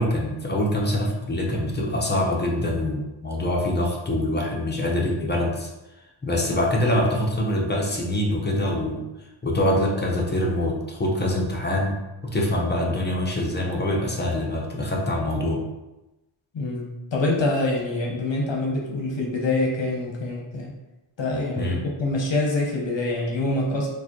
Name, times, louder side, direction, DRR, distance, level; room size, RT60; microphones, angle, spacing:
voice 1, 0.0-5.7 6.2-9.0 9.4-11.9 12.2-15.6 21.6-21.8, left 1 dB, 20° left, -1 dB, 0.6 m, -24 dB
voice 2, 16.5-20.7 21.2-23.9, left 2 dB, 65° left, -2 dB, 0.8 m, -25 dB
4.7 x 2.2 x 2.9 m, 1.0 s
wide cardioid pair, 125°, 49 cm